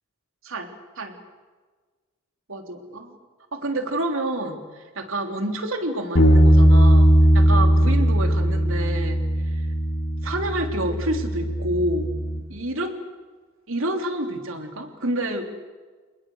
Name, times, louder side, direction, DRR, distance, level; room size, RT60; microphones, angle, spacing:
voice 1, 0.4-1.2 2.5-3.2 3.5-9.6 10.2-12.1 12.5-12.9 13.7-15.5, right 1 dB, 70° right, 5 dB, 3.5 m, -28 dB
Bass guitar, 6.2-12.4, right 1 dB, 80° left, 5.0 m, -18 dB
29.5 x 20.5 x 8.0 m, 1.4 s
head